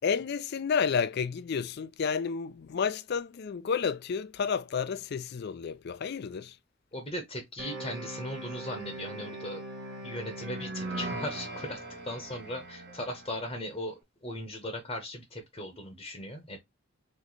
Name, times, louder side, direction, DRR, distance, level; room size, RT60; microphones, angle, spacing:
voice 1, 0.0-6.6, left 6 dB, 50° left, 0.3 m, -31 dB
voice 2, 6.9-9.6 10.0-13.9 14.2-16.6, left 1 dB, 25° left, 0.8 m, -38 dB
sound 1, 7.6-13.5, right 1 dB, 50° right, 1.0 m, -40 dB
3.3 x 3.2 x 3.9 m
head